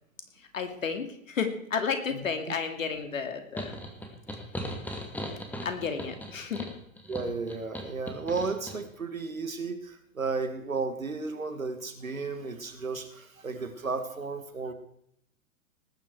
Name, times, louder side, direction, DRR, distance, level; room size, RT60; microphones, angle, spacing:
voice 1, 0.4-3.8 5.6-6.7, left 6 dB, 70° left, 7 dB, 2.5 m, -32 dB
sound 1, 3.6-8.8, equal, 5° left, 2.3 m, -38 dB
voice 2, 7.1-14.7, right 4 dB, 85° right, 9 dB, 2.0 m, -33 dB
19.0 x 9.7 x 4.8 m, 0.71 s
figure-of-eight pair, 100°, 40 cm